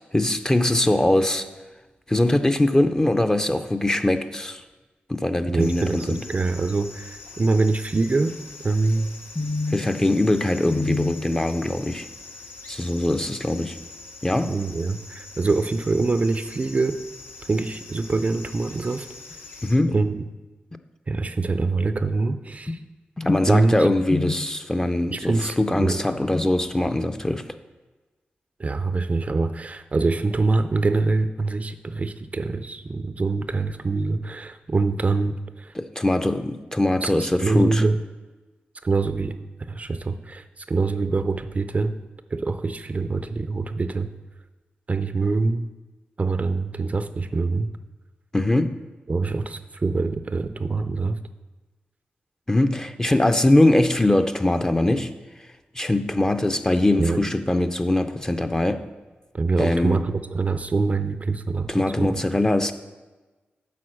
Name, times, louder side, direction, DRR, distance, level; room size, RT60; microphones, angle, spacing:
voice 1, 0.1-1.5 2.1-4.6 5.1-6.2 9.4-12.1 12.7-13.8 14.2-14.6 19.6-19.9 23.2-27.4 35.7-37.8 48.3-48.8 52.5-55.1 55.8-58.8 59.6-60.0 61.7-62.7, left 1 dB, 15° left, 8 dB, 0.5 m, -22 dB
voice 2, 5.5-8.4 8.6-9.1 14.4-17.0 17.5-19.1 19.9-20.2 21.1-22.8 23.5-23.9 25.1-26.0 28.6-35.7 37.0-38.0 38.8-41.9 42.3-44.1 44.9-45.7 46.2-47.7 49.1-51.2 57.0-57.2 59.3-61.7 62.0-62.2, right 3 dB, 40° right, 10 dB, 0.4 m, -24 dB
sound 1, 5.6-19.8, left 3 dB, 85° left, 0.9 m, -43 dB
8.5 x 4.2 x 6.4 m, 1.2 s
cardioid pair, 65°, 4 cm